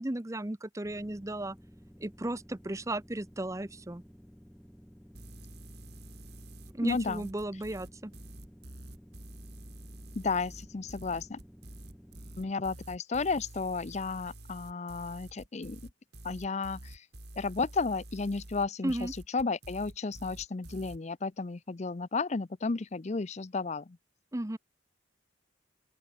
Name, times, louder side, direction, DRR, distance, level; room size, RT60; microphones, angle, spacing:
voice 1, 0.0-1.6 2.0-4.0 6.7-8.1 18.8-19.1 24.3-24.6, right 1 dB, 15° right, 0.7 m, -35 dB
sound 1, 0.8-12.5, equal, ahead, 5.3 m, -54 dB
sound 2, 5.1-21.0, right 1 dB, 55° right, 4.5 m, -48 dB
voice 2, 6.8-7.3 10.1-11.4 12.4-15.8 16.2-17.0 17.4-24.0, left 4 dB, 35° left, 0.5 m, -33 dB
open air
head